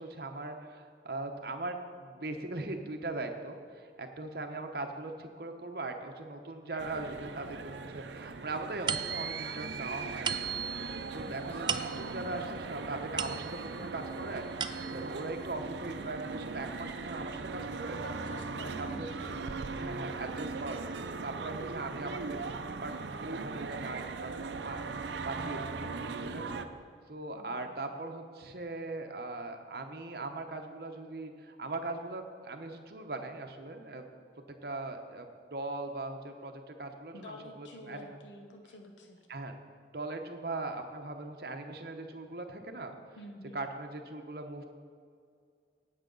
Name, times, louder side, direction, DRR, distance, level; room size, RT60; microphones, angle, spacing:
voice 1, 0.0-10.4 11.1-18.0 18.8-19.3 19.7-25.8 26.2-26.7 27.1-34.0 34.5-38.2 39.3-39.6 39.9-42.9 43.5-44.6, right 2 dB, 55° right, 5 dB, 0.9 m, -40 dB
sound 1, 6.8-26.7, right 4 dB, 75° right, 0.6 m, -39 dB
sound 2, 8.9-13.9 14.3-15.2, right 7 dB, 25° right, 0.3 m, -37 dB
voice 2, 11.2-11.8 18.0-19.4 27.3-27.8 37.1-39.2 43.2-43.6, left 1 dB, 80° left, 3 dB, 0.8 m, -49 dB
17.5 x 6.5 x 3.9 m, 2.2 s
head